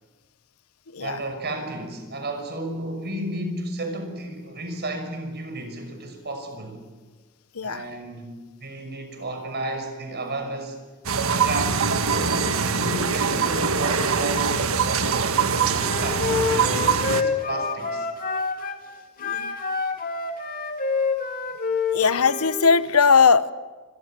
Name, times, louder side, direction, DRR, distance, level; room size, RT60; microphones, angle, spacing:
voice 1, 1.0-6.8 7.6-10.8 11.2-16.8 17.1-18.1, right 2 dB, 50° right, 6 dB, 6.0 m, -33 dB
sound 1, 11.0-17.2, right 5 dB, 70° right, 1.7 m, -23 dB
Wind instrument woodwind instrument, 15.8-18.8 19.2-22.6, left 4 dB, 40° left, 2.7 m, -27 dB
voice 2, 19.2-19.6 21.9-23.5, left 5 dB, 80° left, 15 dB, 1.0 m, -19 dB
28.5 x 24.5 x 7.7 m, 1.4 s
head